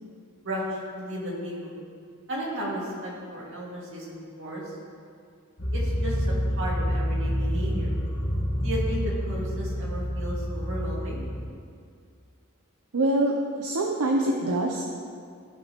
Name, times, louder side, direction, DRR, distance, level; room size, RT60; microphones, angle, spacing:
voice 1, 1.0-1.8 2.3-4.6 5.7-7.9 8.6-11.2, equal, 60° right, -4 dB, 2.1 m, -34 dB
sound 1, 5.6-11.5, equal, 55° left, 1.5 m, -28 dB
voice 2, 12.9-14.8, right 1 dB, 80° right, 0 dB, 0.7 m, -25 dB
15.0 x 5.3 x 3.0 m, 2.2 s
head